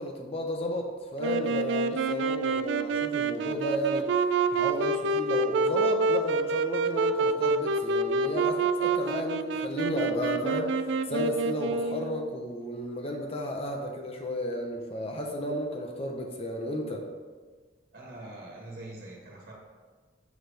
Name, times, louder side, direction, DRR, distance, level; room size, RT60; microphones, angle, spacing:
voice 1, 0.0-4.2 4.5-17.1, left 1 dB, 35° left, 2 dB, 0.8 m, -33 dB
Wind instrument woodwind instrument, 1.2-12.3, right 3 dB, 75° right, 0.4 m, -27 dB
voice 2, 17.9-19.5, right 2 dB, 50° right, -2 dB, 1.7 m, -43 dB
7.2 x 6.0 x 3.4 m, 1.5 s
head